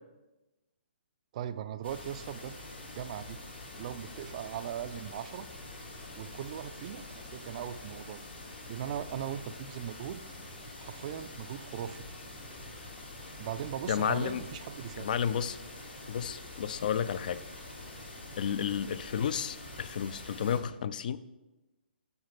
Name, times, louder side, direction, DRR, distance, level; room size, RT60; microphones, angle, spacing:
voice 1, 1.3-2.6 2.9-3.4 3.8-5.5 6.2-8.2 8.7-10.2 10.8-12.0 13.4-15.1, right 10 dB, 40° right, 14 dB, 0.4 m, -39 dB
sound 1, 1.8-20.6, left 2 dB, 80° left, 2.7 m, -46 dB
voice 2, 13.9-14.4 15.0-15.6 16.1-17.4 18.4-21.2, left 8 dB, 50° left, 16 dB, 0.4 m, -31 dB
7.8 x 4.8 x 5.8 m, 1.1 s
figure-of-eight pair, 135°, 6 cm